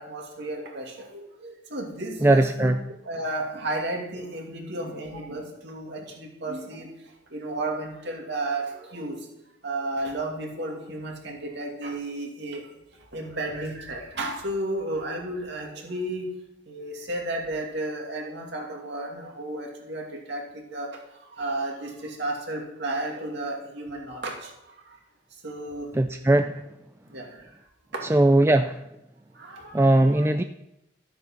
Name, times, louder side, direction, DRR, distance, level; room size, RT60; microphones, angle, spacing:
voice 1, 0.0-2.8 3.0-6.9 7.3-9.2 9.6-12.6 13.1-16.3 16.7-20.4 20.7-20.9 21.4-24.5 25.4-25.9 27.1-27.3 27.9-28.1 29.4-30.3, right 1 dB, 60° right, 0 dB, 2.6 m, -33 dB
voice 2, 2.2-2.8 25.9-26.6 28.1-28.8 29.7-30.4, right 1 dB, 10° right, 8 dB, 0.3 m, -19 dB
13.0 x 7.7 x 5.7 m, 0.85 s
head